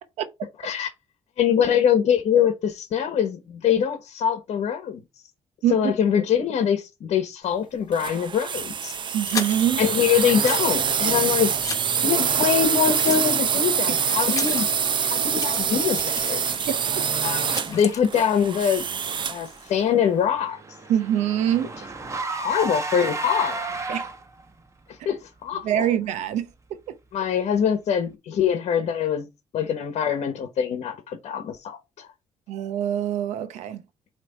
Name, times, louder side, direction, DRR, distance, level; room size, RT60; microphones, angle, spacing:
voice 1, 1.4-5.0 5.7-8.9 9.8-11.5 12.0-14.7 15.0-16.7 17.2-18.9 19.3-20.6 22.3-23.9 24.9-25.9 27.1-29.3 29.5-32.1, left 8 dB, 65° left, 1.2 m, -24 dB
sound 1, 7.9-19.5, right 7 dB, 45° right, 0.6 m, -25 dB
sound 2, 8.9-13.4 13.7-18.0, left 5 dB, 30° left, 1.0 m, -37 dB
voice 2, 9.1-9.8 20.9-21.7 23.9-24.1 25.6-26.5 32.5-33.8, right 10 dB, 90° right, 0.8 m, -24 dB
Car / Engine, 19.4-24.4, right 3 dB, 25° right, 1.2 m, -33 dB
8.4 x 3.2 x 4.4 m
cardioid pair, 100°, 12 cm